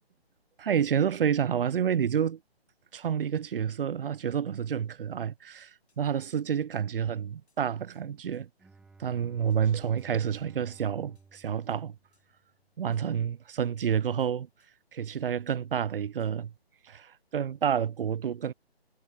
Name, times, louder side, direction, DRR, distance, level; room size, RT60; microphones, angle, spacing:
voice 1, 0.6-2.4 2.9-8.5 9.0-12.0 12.8-14.5 14.9-16.5 16.8-18.5, right 8 dB, 60° right, 0.5 m, -29 dB
sound 1, 5.9-6.0 6.3-6.5 6.7-6.9 7.5-7.6 7.9-8.1 8.3-8.5 9.5-9.6 10.0-10.5 10.7-10.9 11.1-11.3 11.7-11.8 12.1-12.3 12.9-13.1 13.8-14.7 15.1-15.2 16.2-16.3, left 3 dB, 85° left, 6.2 m, -74 dB
Bowed string instrument, 8.6-12.5, right 3 dB, ahead, 1.3 m, -56 dB
hypercardioid pair, 160°, 32 cm